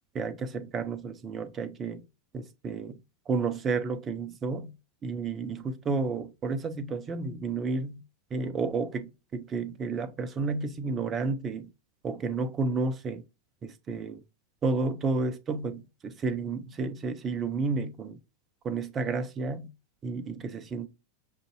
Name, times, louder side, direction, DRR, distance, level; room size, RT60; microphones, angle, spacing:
voice 1, 0.1-2.0 2.3-3.0 3.3-4.7 5.0-8.0 8.3-11.7 12.0-13.2 13.6-14.2 14.6-18.2 18.6-19.7 20.0-20.9, right 4 dB, 25° right, 0.6 m, -31 dB
6.6 x 2.6 x 2.7 m
figure-of-eight pair, 90°, 0 cm